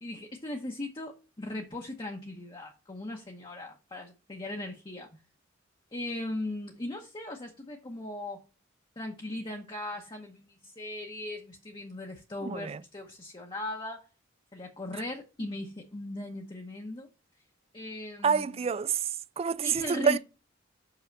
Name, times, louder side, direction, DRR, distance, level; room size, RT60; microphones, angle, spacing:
voice 1, 0.0-5.1 5.9-8.4 9.0-14.1 14.5-17.1 17.7-18.6 19.6-20.2, left 1 dB, 25° left, 0.9 m, -38 dB
voice 2, 12.4-12.8 18.2-19.1 19.4-20.2, right 6 dB, 30° right, 0.3 m, -27 dB
5.7 x 5.6 x 5.2 m
head